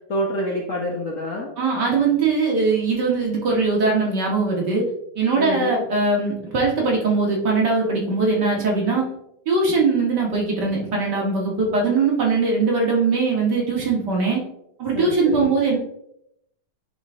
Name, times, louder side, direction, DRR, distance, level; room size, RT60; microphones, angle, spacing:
voice 1, 0.1-1.5 5.4-5.8 14.9-15.5, equal, 50° left, -1 dB, 1.1 m, -27 dB
voice 2, 1.6-4.9 5.2-9.0 9.5-14.4 14.8-15.8, right 4 dB, 55° right, -2 dB, 2.3 m, -21 dB
9.3 x 4.1 x 3.6 m, 0.76 s
omnidirectional pair, 2.3 m